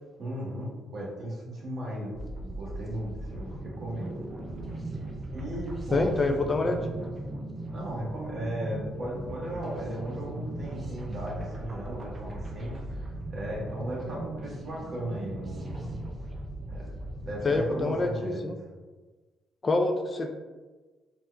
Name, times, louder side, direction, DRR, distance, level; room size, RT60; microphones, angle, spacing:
voice 1, 0.2-4.2 4.9-6.1 7.7-15.7 16.7-16.8 17.3-18.7, equal, 45° right, -4 dB, 1.3 m, -36 dB
sound 1, 2.1-18.1, right 1 dB, 30° right, 0.6 m, -38 dB
voice 2, 5.9-6.9 17.4-18.6 19.6-20.3, left 2 dB, 35° left, 4 dB, 0.3 m, -26 dB
4.1 x 2.4 x 2.2 m, 1.3 s
cardioid pair, 90°, 0 cm